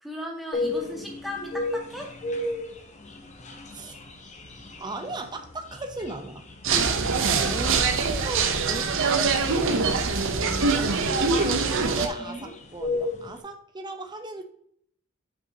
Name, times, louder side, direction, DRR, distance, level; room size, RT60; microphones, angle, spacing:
voice 1, 0.0-2.2 7.1-7.2 7.4-8.0 12.2-12.5, equal, ahead, -2 dB, 1.7 m, -38 dB
sound 1, 0.5-13.4, left 2 dB, 35° left, 1.0 m, -35 dB
voice 2, 4.8-14.4, right 2 dB, 20° right, 5 dB, 0.7 m, -36 dB
sound 2, 6.6-12.1, right 4 dB, 65° right, 0.8 m, -24 dB
7.9 x 5.8 x 2.8 m, 0.67 s
head